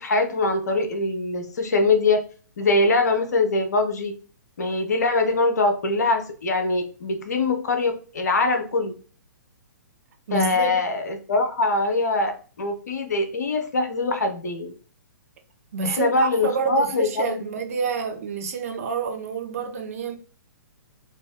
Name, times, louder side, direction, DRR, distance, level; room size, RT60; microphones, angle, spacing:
voice 1, 0.0-2.2 2.6-4.1 4.6-8.9 10.3-12.3 12.6-14.7 15.8-17.4, left 3 dB, 55° left, 0.8 m, -23 dB
voice 2, 10.3-10.8 15.7-20.2, right 5 dB, 45° right, 0.7 m, -28 dB
3.2 x 2.5 x 3.6 m
figure-of-eight pair, 120°, 11 cm